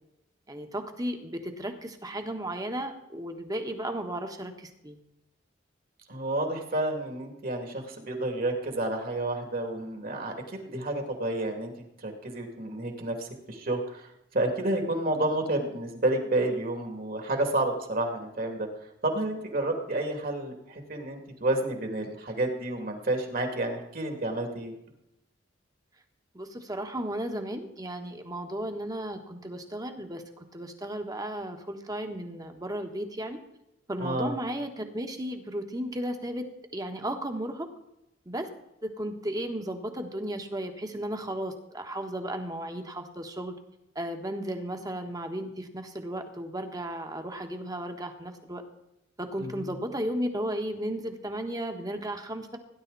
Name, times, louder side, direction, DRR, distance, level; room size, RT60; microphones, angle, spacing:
voice 1, 0.5-5.0 26.3-33.4 33.9-36.5 36.7-37.7 38.2-38.5 38.8-43.5 43.9-48.6 49.2-52.6, right 1 dB, 20° right, 5 dB, 1.5 m, -34 dB
voice 2, 6.1-11.7 12.0-18.7 19.0-24.7 34.0-34.3 49.4-49.8, right 1 dB, 50° right, 3 dB, 2.7 m, -30 dB
17.5 x 10.5 x 4.1 m, 0.86 s
head